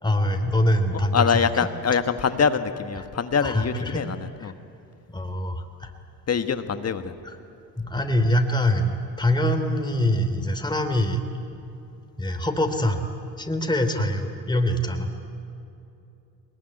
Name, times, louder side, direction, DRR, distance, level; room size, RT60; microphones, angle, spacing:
voice 1, 0.0-1.3 3.4-4.0 4.4-4.5 5.1-5.9 7.2-7.4 7.8-11.2 12.2-13.0 13.4-15.1, left 1 dB, 10° left, 5 dB, 3.1 m, -24 dB
voice 2, 1.1-4.5 6.3-7.1, left 6 dB, 30° left, 10 dB, 1.4 m, -24 dB
22.5 x 21.5 x 9.6 m, 2.7 s
hypercardioid pair, 60°, 49 cm